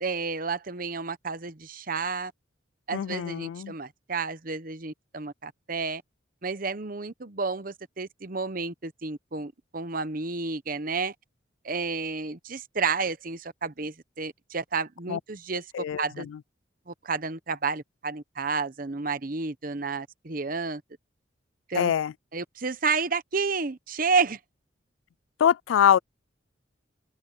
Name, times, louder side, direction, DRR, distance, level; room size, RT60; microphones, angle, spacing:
voice 1, 0.0-2.3 2.9-6.0 6.4-11.1 11.6-15.6 16.0-16.3 16.9-20.8 21.7-21.9 22.3-24.4, right 4 dB, 45° right, 1.0 m, -31 dB
voice 2, 2.9-3.7 15.1-15.2 15.7-16.0 21.8-22.1 25.4-26.0, left 9 dB, 85° left, 0.3 m, -23 dB
head